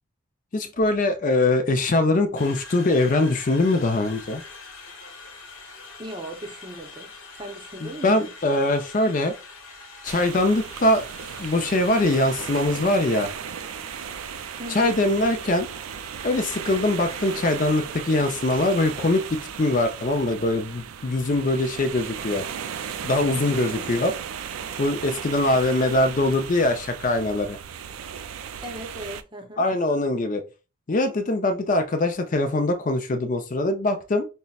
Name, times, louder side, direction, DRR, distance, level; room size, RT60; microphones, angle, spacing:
voice 1, 0.5-4.4 7.8-9.3 10.0-11.0 11.4-13.3 14.7-15.7 16.2-22.4 23.0-24.1 24.8-27.6 29.6-30.4 30.9-34.3, left 2 dB, 40° left, 0.4 m, -22 dB
Conversation, 2.4-18.0, left 3 dB, 70° left, 1.2 m, -44 dB
voice 2, 6.0-8.3 14.6-15.0 23.7-23.9 28.6-29.6, right 1 dB, 20° right, 0.7 m, -38 dB
sound 1, 10.1-29.2, right 8 dB, 80° right, 0.4 m, -36 dB
5.4 x 2.1 x 2.3 m
head